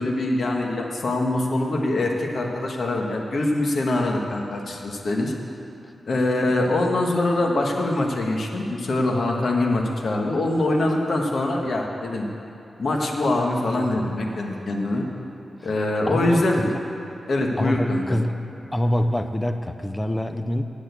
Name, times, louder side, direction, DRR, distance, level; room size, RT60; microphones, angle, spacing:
voice 1, 0.0-5.3 6.1-12.3 12.8-15.1 15.6-16.7 17.3-18.2, left 2 dB, 60° left, 1 dB, 1.3 m, -23 dB
voice 2, 15.6-16.8 17.6-18.4 18.7-20.6, left 1 dB, 10° left, 8 dB, 0.4 m, -26 dB
8.7 x 8.1 x 8.2 m, 2.9 s
wide cardioid pair, 145°, 0 cm